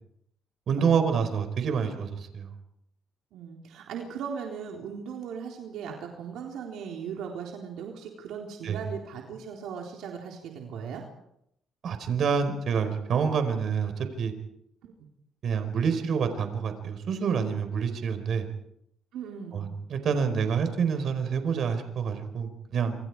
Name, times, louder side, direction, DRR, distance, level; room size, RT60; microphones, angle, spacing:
voice 1, 0.7-2.5 8.6-8.8 11.8-13.9 14.2-14.3 15.4-18.4 19.5-23.0, right 6 dB, 65° right, 8 dB, 4.6 m, -27 dB
voice 2, 3.3-11.0 14.8-15.1 19.1-19.7, right 7 dB, 85° right, 0 dB, 3.8 m, -38 dB
27.5 x 26.0 x 4.8 m, 0.76 s
cardioid pair, 90°, 0 cm